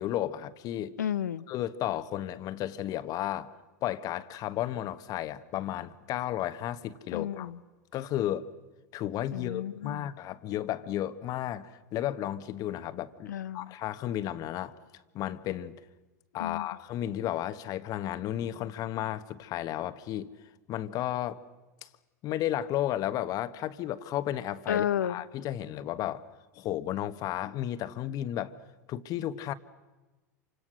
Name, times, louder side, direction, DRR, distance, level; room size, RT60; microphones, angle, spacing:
voice 1, 0.0-0.9 1.5-3.5 3.8-7.5 7.9-8.5 8.9-14.7 15.1-15.7 16.3-20.3 20.7-21.4 21.8-21.9 22.2-26.2 26.5-28.5 28.9-29.5, left 12 dB, 40° left, 12 dB, 1.3 m, -33 dB
voice 2, 1.0-1.5 7.1-7.6 9.3-10.1 13.3-13.7 16.4-16.7 24.7-25.2, left 10 dB, 80° left, 16 dB, 0.9 m, -32 dB
28.0 x 25.5 x 6.4 m, 1.1 s
hypercardioid pair, 95°, 9 cm